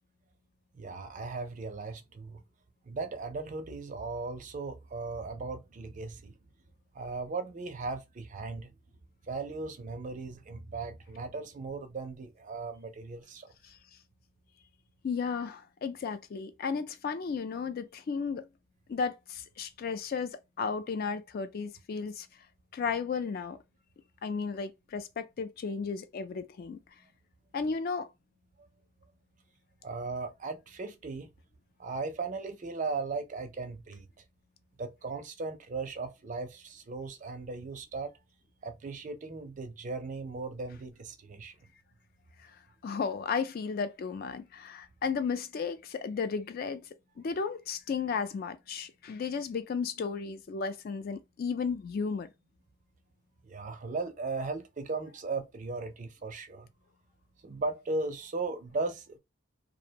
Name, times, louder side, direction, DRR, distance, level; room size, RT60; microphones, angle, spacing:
voice 1, 0.7-2.4 2.9-6.4 6.9-8.7 9.3-13.5 29.8-31.3 31.8-34.1 34.8-38.2 38.6-41.6 53.4-56.7 57.4-59.2, right 3 dB, 40° right, 0.4 m, -37 dB
voice 2, 15.0-18.4 18.9-22.3 22.7-23.6 24.2-26.8 27.5-28.1 42.8-46.8 47.2-52.3, left 5 dB, 45° left, 0.3 m, -34 dB
2.5 x 2.0 x 2.8 m
head